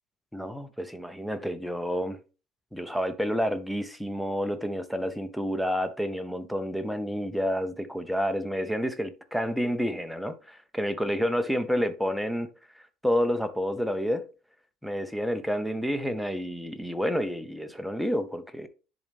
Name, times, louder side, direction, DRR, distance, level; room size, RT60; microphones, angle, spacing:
voice 1, 0.3-2.2 2.7-12.5 12.8-14.3 14.8-18.7, equal, ahead, 0.6 m, -29 dB
10.5 x 3.9 x 3.5 m
cardioid pair, 150°, 0 cm